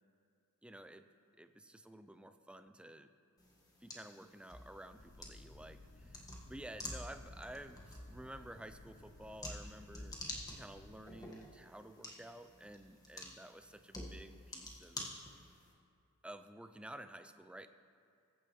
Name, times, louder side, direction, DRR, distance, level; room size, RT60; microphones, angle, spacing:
voice 1, 0.6-3.1 3.8-10.2 10.5-15.1 16.2-17.7, right 1 dB, 5° right, 10 dB, 0.4 m, -52 dB
sound 1, 3.4-15.7, left 1 dB, 15° left, 1.4 m, -50 dB
sound 2, 4.9-10.9, left 2 dB, 40° left, 2.5 m, -58 dB
21.0 x 9.1 x 3.1 m, 2.5 s
head